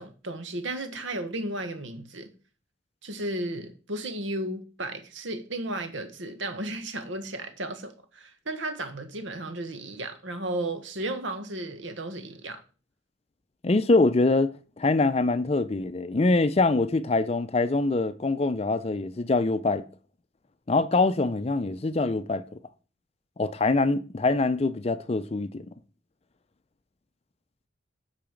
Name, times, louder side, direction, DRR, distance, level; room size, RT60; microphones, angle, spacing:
voice 1, 0.0-2.3 3.0-12.6, right 1 dB, 80° right, 1.4 m, -34 dB
voice 2, 13.6-19.9 20.7-22.4 23.4-25.7, left 3 dB, 30° left, 0.5 m, -24 dB
8.9 x 4.8 x 5.1 m
head